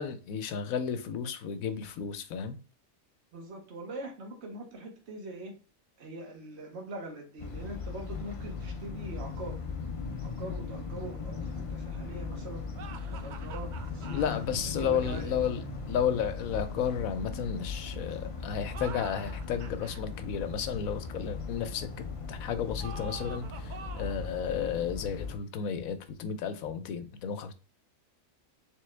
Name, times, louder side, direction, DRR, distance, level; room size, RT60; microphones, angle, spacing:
voice 1, 0.0-2.6 14.1-15.6 15.9-27.5, left 7 dB, 90° left, 1.1 m, -33 dB
voice 2, 3.3-5.5 6.0-9.6 10.2-12.7 13.1-14.2 14.7-15.4, right 2 dB, 55° right, 1.4 m, -42 dB
sound 1, 7.4-25.4, left 4 dB, 45° left, 0.4 m, -38 dB
sound 2, 12.7-14.4 18.6-20.0 22.8-24.3, right 5 dB, 75° right, 0.4 m, -46 dB
3.8 x 3.4 x 3.2 m
omnidirectional pair, 1.4 m